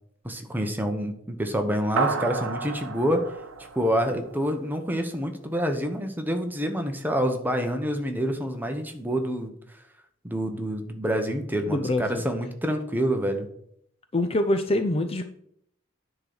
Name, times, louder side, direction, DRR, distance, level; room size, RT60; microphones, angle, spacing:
voice 1, 0.2-3.2 3.7-9.5 10.2-13.5, equal, 10° right, 5 dB, 1.0 m, -27 dB
sound 1, 2.0-4.7, right 4 dB, 85° right, 0.8 m, -31 dB
voice 2, 11.7-12.2 14.1-15.3, left 1 dB, 30° left, 8 dB, 0.5 m, -25 dB
9.8 x 3.9 x 6.1 m, 0.69 s
head